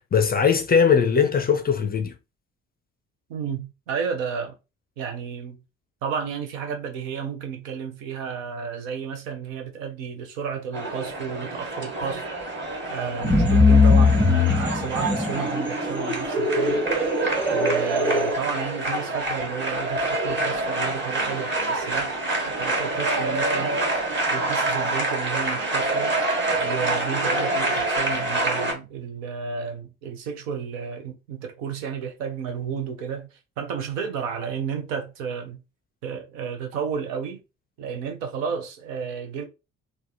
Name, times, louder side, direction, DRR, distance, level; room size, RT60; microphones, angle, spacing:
voice 1, 0.1-2.2, left 6 dB, 25° left, 0.5 m, -20 dB
voice 2, 3.3-4.5 5.0-5.6 6.0-12.6 12.8-16.8 17.5-22.1 22.4-23.8 24.3-26.1 26.6-35.6 36.0-37.4 37.8-39.4, right 7 dB, 70° right, 0.7 m, -32 dB
sound 1, 10.7-28.7, right 2 dB, 30° right, 1.2 m, -27 dB
sound 2, 13.2-18.3, left 3 dB, 5° right, 0.8 m, -20 dB
3.3 x 2.1 x 2.8 m
figure-of-eight pair, 40°, 41 cm